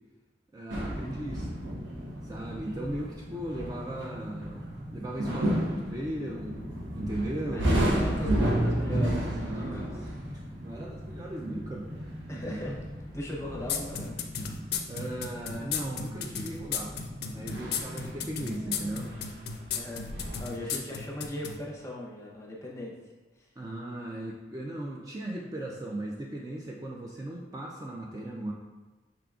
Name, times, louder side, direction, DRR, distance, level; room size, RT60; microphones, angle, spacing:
voice 1, 0.5-1.6 2.2-4.6 4.9-6.7 7.0-7.7 9.4-10.0 10.3-12.0 12.3-12.8 14.9-16.9 17.3-19.1 20.6-21.0 23.6-28.5, right 1 dB, 20° right, -2 dB, 0.3 m, -37 dB
sound 1, 0.7-20.4, right 1 dB, 85° right, 0.9 m, -33 dB
sound 2, 0.9-19.1, left 1 dB, 60° right, 1.3 m, -44 dB
voice 2, 7.5-10.0 12.3-12.8 13.1-14.2 19.7-20.1 20.4-23.5, left 1 dB, 15° left, -3 dB, 0.7 m, -39 dB
sound 3, 13.7-21.6, left 8 dB, 60° left, 0.4 m, -34 dB
5.7 x 3.7 x 2.3 m, 1.2 s
head